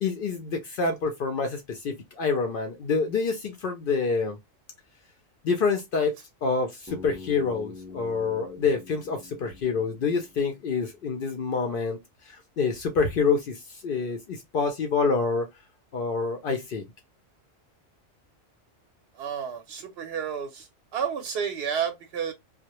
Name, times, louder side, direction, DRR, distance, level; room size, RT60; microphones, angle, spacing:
voice 1, 0.0-4.4 5.4-6.1 6.4-12.0 12.2-15.5 15.9-16.8, left 4 dB, 65° left, 0.5 m, -27 dB
Bass guitar, 6.9-10.9, left 4 dB, 20° right, 0.3 m, -45 dB
voice 2, 19.1-22.3, right 7 dB, 65° right, 0.7 m, -31 dB
2.1 x 2.1 x 2.9 m
omnidirectional pair, 1.4 m